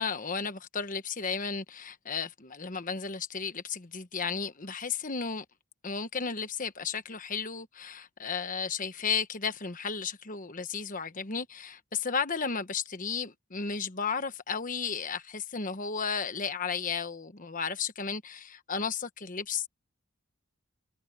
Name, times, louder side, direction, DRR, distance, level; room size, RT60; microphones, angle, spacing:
voice 1, 0.0-5.4 5.8-19.7, left 5 dB, 40° left, 1.2 m, -34 dB
head